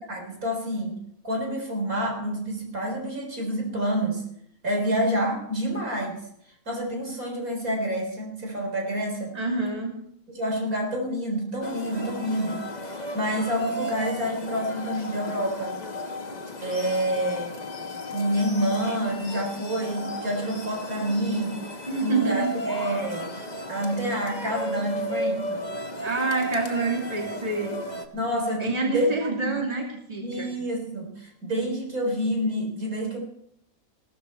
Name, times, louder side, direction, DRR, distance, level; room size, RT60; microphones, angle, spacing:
voice 1, 0.1-1.0 1.2-4.2 4.6-6.2 6.7-9.4 10.3-12.6 12.9-15.8 16.6-17.5 18.1-21.6 22.0-23.3 23.7-25.7 28.1-29.5 30.2-33.2, equal, 75° right, 1 dB, 4.5 m, -28 dB
voice 2, 9.3-10.0 21.9-22.5 26.0-27.8 28.6-30.5, right 3 dB, 25° right, 0 dB, 2.7 m, -27 dB
sound 1, 11.6-28.1, left 1 dB, 30° left, 1.4 m, -34 dB
17.0 x 13.5 x 4.4 m, 0.72 s
omnidirectional pair, 1.5 m